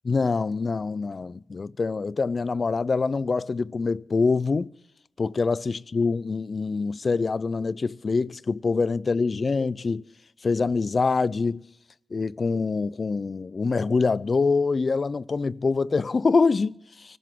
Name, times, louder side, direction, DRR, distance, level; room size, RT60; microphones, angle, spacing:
voice 1, 0.0-4.7 5.2-10.0 10.4-11.6 12.1-17.2, left 4 dB, 55° left, 0.5 m, -25 dB
24.5 x 13.5 x 3.7 m
supercardioid pair, 40°, 0 cm